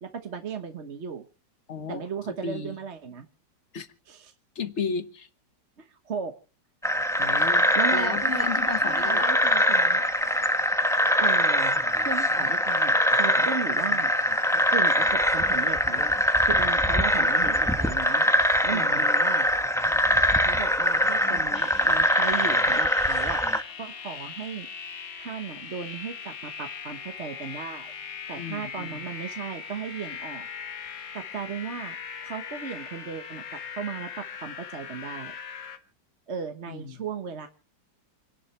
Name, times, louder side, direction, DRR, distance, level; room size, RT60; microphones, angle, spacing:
voice 1, 0.0-1.3 1.9-3.3 4.1-4.3 5.8-6.3 7.7-10.0 11.2-14.1 14.7-18.2 18.6-19.5 20.4-24.7 25.2-27.9 28.3-30.5 31.1-32.0 32.2-35.3 36.3-37.5, right 6 dB, 40° right, 1.3 m, -36 dB
voice 2, 1.7-2.0 2.4-2.8 3.7-3.9 4.5-5.3 7.2-7.6 7.9-9.4 18.7-19.1 28.4-29.1 36.7-37.0, left 5 dB, 40° left, 1.4 m, -34 dB
sound 1, 6.8-23.6, equal, ahead, 0.8 m, -23 dB
sound 2, 21.5-35.8, left 7 dB, 80° left, 2.1 m, -40 dB
29.0 x 11.0 x 3.3 m
omnidirectional pair, 2.0 m